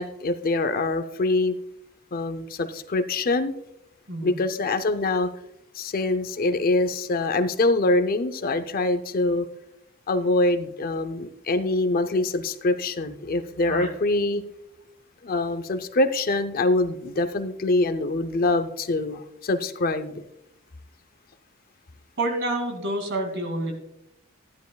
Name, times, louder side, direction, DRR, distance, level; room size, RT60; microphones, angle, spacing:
voice 1, 0.0-1.5 2.1-3.5 4.2-5.3 5.8-9.5 10.1-14.4 15.2-20.2, left 2 dB, 45° left, 11 dB, 0.5 m, -24 dB
voice 2, 4.1-4.4 13.7-13.9 22.2-23.7, right 1 dB, 55° right, 3 dB, 2.4 m, -28 dB
14.0 x 10.5 x 2.3 m, 0.83 s
head